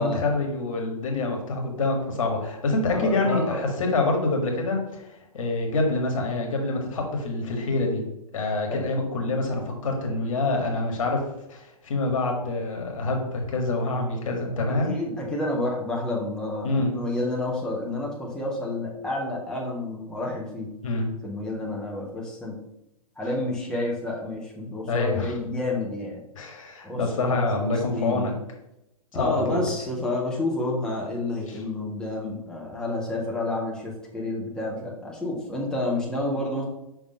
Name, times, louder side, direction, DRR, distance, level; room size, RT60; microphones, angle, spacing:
voice 1, 0.0-5.1 5.3-8.0 8.3-11.2 11.5-14.9 16.6-16.9 20.8-21.1 24.9-25.3 26.4-28.3 29.1-29.6 31.5-31.6, left 2 dB, 60° left, 2 dB, 1.8 m, -26 dB
voice 2, 2.9-3.6 8.7-8.8 14.9-20.7 21.2-22.5 23.2-26.2 26.8-27.0 27.3-27.4 27.7-28.3 29.1-36.6, left 2 dB, 5° left, -4 dB, 1.5 m, -29 dB
5.8 x 3.8 x 5.4 m, 0.85 s
figure-of-eight pair, 120°, 19 cm